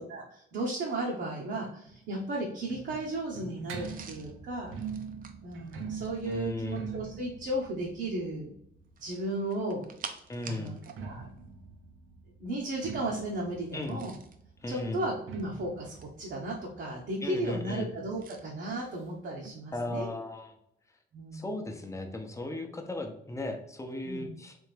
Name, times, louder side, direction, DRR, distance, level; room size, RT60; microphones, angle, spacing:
voice 1, 0.1-4.7 5.4-8.5 9.0-9.9 10.5-10.8 11.0-11.3 12.4-14.2 14.7-20.1 21.1-21.5 24.0-24.3, right 1 dB, 60° right, -3 dB, 0.9 m, -35 dB
sound 1, 1.9-9.6 10.7-18.1 18.3-18.4 18.7-18.8 19.4-19.5, right 6 dB, 85° right, 0.6 m, -44 dB
sound 2, 3.8-6.5 8.9-11.0 11.3-11.5 13.7-14.4 15.2-16.3 18.2-18.4, right 6 dB, 45° right, 0.6 m, -48 dB
voice 2, 6.3-6.8 10.3-10.7 13.7-14.0 14.6-15.0 17.2-17.9 19.7-20.5 21.3-24.6, left 2 dB, 15° left, 4 dB, 0.7 m, -36 dB
3.5 x 3.3 x 3.3 m, 0.73 s
cardioid pair, 90°, 20 cm